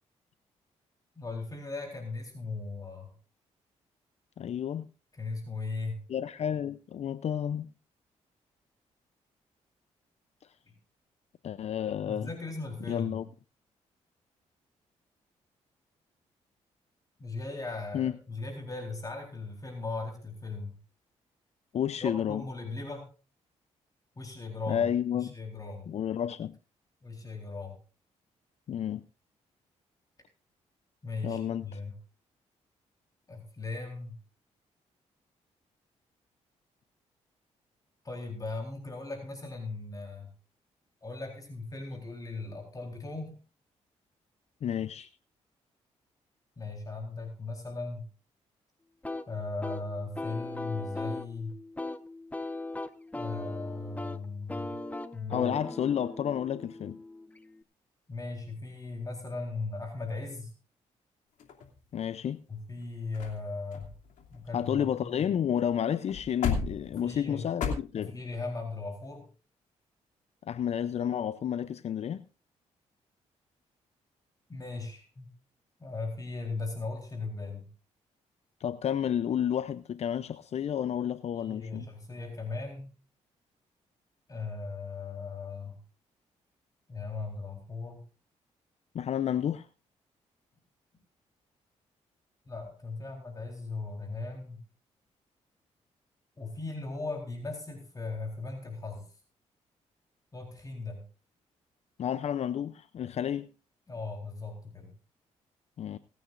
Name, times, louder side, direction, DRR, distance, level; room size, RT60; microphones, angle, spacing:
voice 1, 1.2-3.1 5.1-6.0 12.1-13.2 17.2-20.7 22.0-23.1 24.2-24.9 25.2-25.9 27.0-27.8 31.0-32.0 33.3-34.2 38.0-40.3 41.0-43.4 46.6-48.0 49.3-51.5 53.1-54.7 55.1-55.5 58.1-60.5 62.5-63.9 64.3-65.3 67.0-67.5 68.0-69.3 74.5-75.3 75.8-77.7 81.3-82.9 84.3-85.8 86.9-88.0 92.5-94.6 96.4-99.0 100.3-101.0 103.9-104.9, left 3 dB, 30° left, 4.0 m, -38 dB
voice 2, 4.4-4.9 6.1-7.7 11.4-12.3 12.9-13.2 17.9-18.1 21.7-22.4 24.7-25.3 25.9-26.6 28.7-29.0 31.2-31.8 44.6-45.1 55.3-57.0 61.9-62.4 64.5-68.2 70.5-72.3 78.6-81.9 88.9-89.7 102.0-103.5 105.8-106.0, left 9 dB, 60° left, 0.6 m, -31 dB
sound 1, 49.0-57.6, left 2 dB, 10° left, 1.1 m, -39 dB
sound 2, 61.4-62.2 62.8-62.9 63.1-63.4 63.7-65.3 65.6-65.7 66.0-67.7, left 6 dB, 85° left, 2.8 m, -35 dB
27.0 x 9.3 x 2.6 m
cardioid pair, 70°, 13 cm